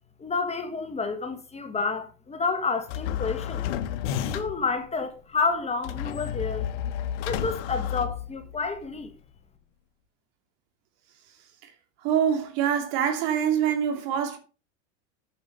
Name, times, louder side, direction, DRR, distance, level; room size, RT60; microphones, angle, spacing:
voice 1, 0.2-3.7 4.2-6.7 7.2-9.1, left 4 dB, 15° left, 1.2 m, -29 dB
sound 1, 2.9-4.7 5.8-8.7, left 10 dB, 65° left, 1.2 m, -31 dB
voice 2, 12.0-14.4, right 8 dB, 55° right, 2.8 m, -25 dB
8.7 x 6.9 x 5.5 m
supercardioid pair, 125°, 39 cm